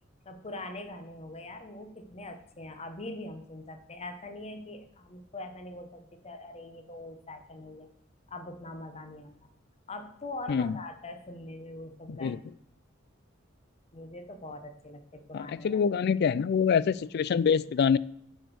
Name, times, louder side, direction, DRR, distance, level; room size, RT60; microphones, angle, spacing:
voice 1, 0.2-7.9 8.3-9.5 9.9-12.4 13.9-15.8, left 2 dB, 30° left, 7 dB, 0.9 m, -42 dB
voice 2, 12.1-12.4 15.3-18.0, left 6 dB, 55° left, 19 dB, 0.3 m, -25 dB
7.9 x 5.2 x 6.1 m, 0.69 s
head